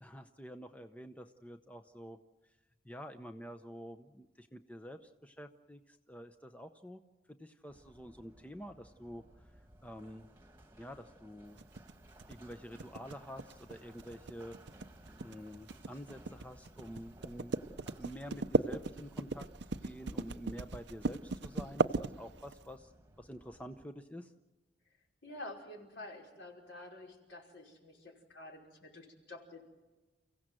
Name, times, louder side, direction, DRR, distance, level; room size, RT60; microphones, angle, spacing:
voice 1, 0.0-2.2 2.8-7.0 7.3-9.5 9.8-10.3 10.8-11.6 12.3-14.6 15.2-17.6 18.0-19.5 19.8-22.9 23.2-24.3, equal, 5° left, 8 dB, 0.7 m, -48 dB
Run, 7.7-23.8, right 1 dB, 10° right, 1.5 m, -58 dB
sound 1, 11.6-22.6, right 3 dB, 60° right, 0.7 m, -36 dB
voice 2, 25.2-29.6, left 1 dB, 65° left, 1 dB, 5.2 m, -49 dB
30.0 x 16.0 x 7.8 m, 1.2 s
head